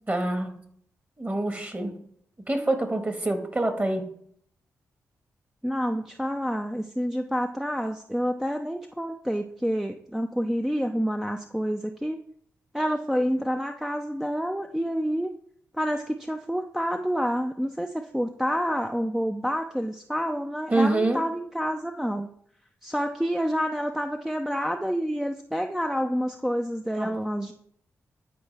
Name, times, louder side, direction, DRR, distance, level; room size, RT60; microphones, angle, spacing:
voice 1, 0.1-0.5 1.2-2.0 2.5-4.1 20.7-21.2 27.0-27.1, right 2 dB, 25° right, 6 dB, 1.5 m, -26 dB
voice 2, 5.6-12.2 12.7-15.3 15.7-22.3 22.8-27.5, equal, 5° right, 5 dB, 0.5 m, -28 dB
10.0 x 4.4 x 3.4 m, 0.65 s
supercardioid pair, 50°, 6 cm